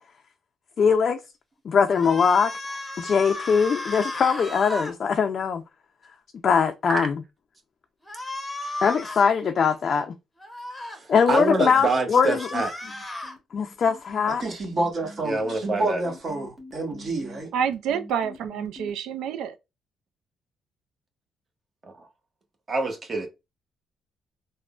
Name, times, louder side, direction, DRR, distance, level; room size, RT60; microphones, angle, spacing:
voice 1, 0.8-1.2 1.6-5.6 6.4-7.1 8.8-10.1 11.1-12.6 13.5-14.4, left 6 dB, 55° left, 0.4 m, -22 dB
sound 1, 1.9-4.9 8.1-9.3 10.4-11.0 12.1-13.4, left 2 dB, 5° left, 0.8 m, -34 dB
voice 2, 10.9-12.7 15.2-16.0 21.8-22.1 22.7-23.3, right 3 dB, 35° right, 0.9 m, -26 dB
sound 2, 12.8-18.9, left 1 dB, 15° right, 1.1 m, -44 dB
voice 3, 14.4-17.5, right 2 dB, 50° right, 1.2 m, -29 dB
voice 4, 17.5-19.6, right 8 dB, 85° right, 0.4 m, -28 dB
3.5 x 2.1 x 2.4 m
cardioid pair, 90°, 0 cm